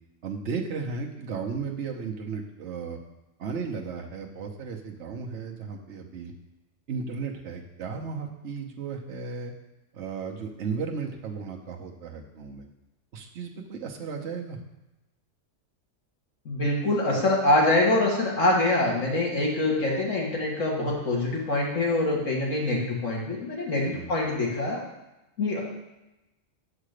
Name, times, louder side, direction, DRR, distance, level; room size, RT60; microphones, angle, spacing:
voice 1, 0.2-3.0 3.4-6.3 6.9-9.5 9.9-12.6 13.1-14.6 23.9-24.1, right 5 dB, 65° right, 1 dB, 1.2 m, -35 dB
voice 2, 16.5-24.8 25.4-25.6, left 2 dB, 75° left, -3 dB, 2.3 m, -24 dB
7.4 x 4.9 x 6.6 m, 0.97 s
omnidirectional pair, 1.3 m